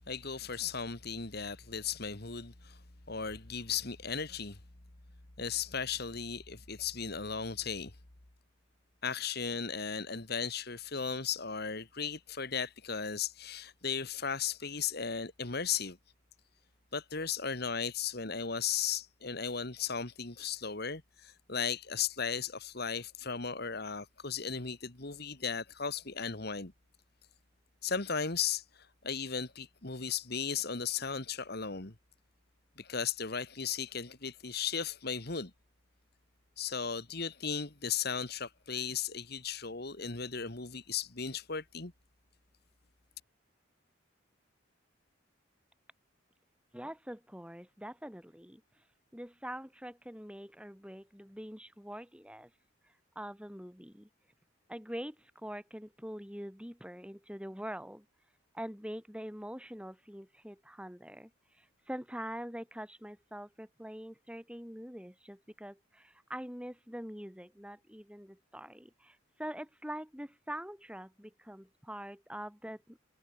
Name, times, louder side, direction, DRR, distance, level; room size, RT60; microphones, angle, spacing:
voice 1, 0.1-2.8 3.1-4.6 5.4-7.9 9.0-16.0 16.9-26.7 27.8-31.9 32.8-35.5 36.6-41.9, left 6 dB, 50° left, 1.9 m, -36 dB
voice 2, 46.7-48.6 49.1-52.5 53.2-54.1 54.7-58.1 58.5-61.3 61.6-73.0, equal, 5° right, 7.1 m, -44 dB
head